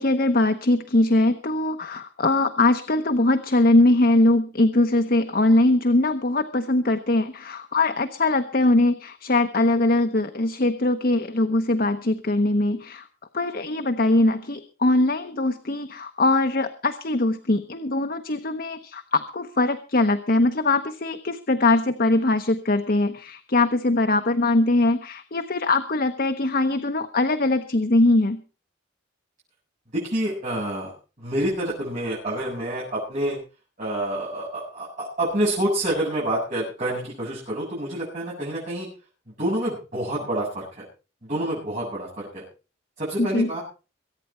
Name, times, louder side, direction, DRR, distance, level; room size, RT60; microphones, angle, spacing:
voice 1, 0.0-13.1 13.3-28.4 43.2-43.5, left 2 dB, 50° left, 8 dB, 0.9 m, -21 dB
voice 2, 29.9-30.9 31.2-33.4 33.8-38.9 39.4-40.8 41.2-42.4 43.0-43.6, right 1 dB, 40° right, -6 dB, 7.9 m, -27 dB
23.0 x 9.3 x 4.4 m, 0.33 s
head